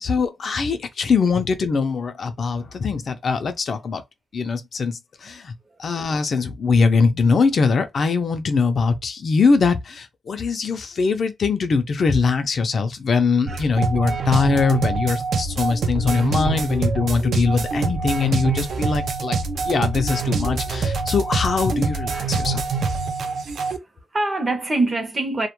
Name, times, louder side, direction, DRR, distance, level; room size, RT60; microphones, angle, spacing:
voice 1, 0.0-4.0 4.3-5.5 5.8-19.4 19.6-22.6, left 4 dB, 50° left, 0.3 m, -22 dB
sound 1, 13.5-23.8, right 4 dB, 75° right, 0.4 m, -25 dB
voice 2, 23.5-25.5, right 2 dB, 25° right, 0.5 m, -25 dB
2.1 x 2.1 x 2.9 m
wide cardioid pair, 150°, 0 cm